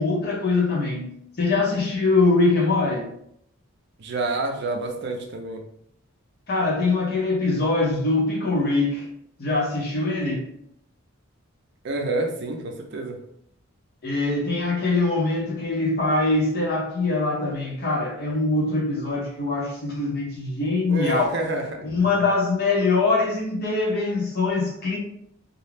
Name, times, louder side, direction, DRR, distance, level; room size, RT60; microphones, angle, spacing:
voice 1, 0.0-3.1 6.5-9.1 9.4-10.5 14.0-21.4 21.8-25.0, left 3 dB, 45° left, -2 dB, 0.6 m, -23 dB
voice 2, 4.0-5.6 11.8-13.2 20.9-21.9, right 2 dB, 50° right, 2 dB, 0.4 m, -28 dB
2.3 x 2.0 x 3.2 m, 0.71 s
head